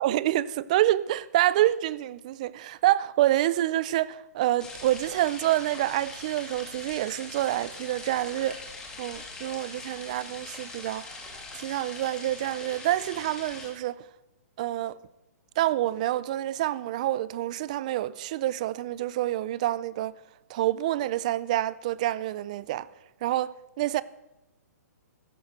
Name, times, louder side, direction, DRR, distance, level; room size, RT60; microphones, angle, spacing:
voice 1, 0.0-8.6 9.0-11.2 11.5-14.1 14.6-15.0 15.6-20.1 20.5-22.9 23.2-24.0, right 14 dB, 25° right, 0.4 m, -27 dB
sound 1, 4.6-13.7, left 3 dB, 5° left, 2.1 m, -42 dB
15.5 x 13.0 x 6.1 m
hypercardioid pair, 170°, 9 cm